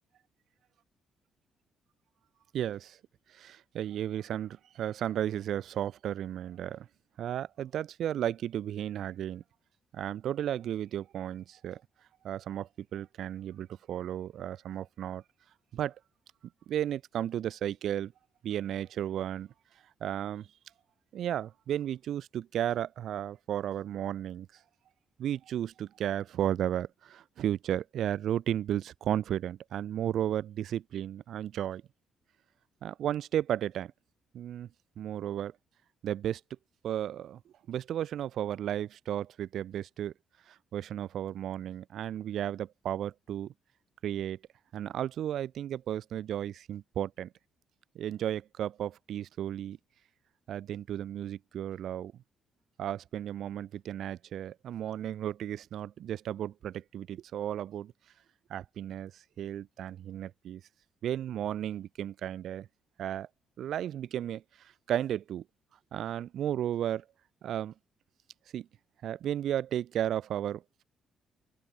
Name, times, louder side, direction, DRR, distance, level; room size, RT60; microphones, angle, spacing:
voice 1, 2.5-3.0 3.3-6.9 7.2-9.4 9.9-11.8 12.2-15.2 15.7-16.0 16.7-18.1 18.4-19.5 20.0-20.5 21.1-24.5 25.2-31.8 32.8-33.9 34.3-34.7 35.0-35.5 36.0-36.4 36.8-37.4 37.7-40.1 40.5-43.5 44.0-44.4 44.7-47.3 47.9-49.8 50.5-52.1 52.8-57.9 58.5-60.6 61.0-62.7 63.0-63.3 63.6-65.4 65.9-67.0 67.4-67.7 68.5-68.7 69.0-70.8, right 11 dB, 70° right, 0.5 m, -34 dB
open air
cardioid pair, 90°, 0 cm